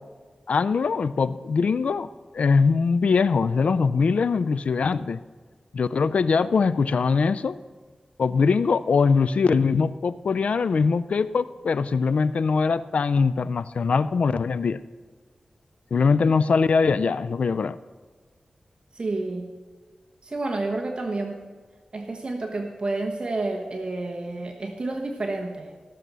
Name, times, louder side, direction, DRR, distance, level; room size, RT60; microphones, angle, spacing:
voice 1, 0.5-5.2 5.7-7.6 8.2-14.8 15.9-17.8, left 5 dB, 75° left, 15 dB, 0.3 m, -22 dB
voice 2, 18.9-19.5 20.2-21.4 21.9-25.7, right 2 dB, 45° right, 2 dB, 1.1 m, -30 dB
16.0 x 6.7 x 6.1 m, 1.4 s
wide cardioid pair, 80°, 2 cm